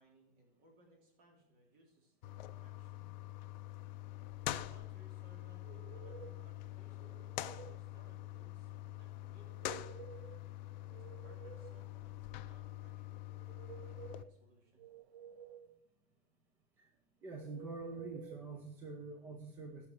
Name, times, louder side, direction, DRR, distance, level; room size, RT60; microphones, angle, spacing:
voice 1, 0.0-3.1 4.4-9.8 11.2-14.9, right 1 dB, 30° right, 2 dB, 3.1 m, -66 dB
sound 1, 2.2-14.2, left 14 dB, 45° left, 0.6 m, -45 dB
sound 2, 5.6-6.5 7.0-7.8 9.4-10.4 10.8-11.9 13.3-14.3 14.8-15.8 17.4-18.4, right 9 dB, 85° right, 0.8 m, -53 dB
voice 2, 17.2-19.9, right 3 dB, 5° right, 3 dB, 0.3 m, -46 dB
15.5 x 5.8 x 4.4 m, 0.81 s
supercardioid pair, 160°, 31 cm